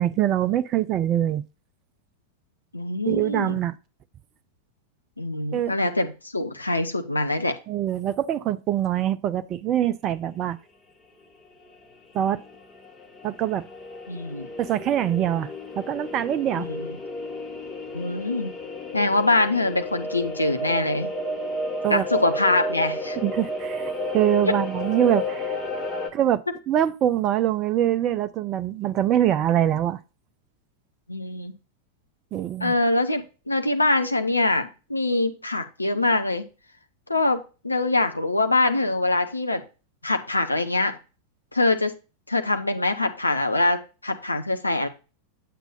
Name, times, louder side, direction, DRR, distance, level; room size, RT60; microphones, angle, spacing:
voice 1, 0.0-1.4 3.1-3.8 5.5-5.7 7.7-10.6 12.1-12.4 13.2-13.7 14.6-16.7 21.8-22.0 23.2-25.6 26.1-30.0 32.3-32.7, right 11 dB, 35° right, 0.4 m, -24 dB
voice 2, 2.7-3.6 5.2-7.5 14.1-14.5 16.6-16.9 17.9-18.5 18.9-21.1 21.9-23.2 31.1-31.5 32.6-36.4 37.1-39.6 40.0-41.0 41.5-41.9 42.3-44.9, left 2 dB, 85° left, 0.9 m, -24 dB
sound 1, 11.6-11.7 11.9-12.0 12.3-26.1, left 1 dB, 15° left, 1.6 m, -32 dB
8.4 x 8.1 x 2.5 m
figure-of-eight pair, 90°, 0 cm